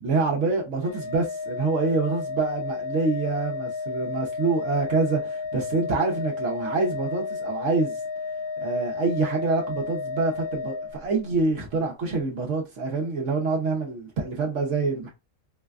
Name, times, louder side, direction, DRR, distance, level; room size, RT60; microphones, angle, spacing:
voice 1, 0.0-8.0 8.6-15.1, right 3 dB, 65° right, 1.1 m, -26 dB
Organ, 0.8-11.5, left 4 dB, 20° right, 1.0 m, -32 dB
4.8 x 2.2 x 2.4 m
omnidirectional pair, 1.4 m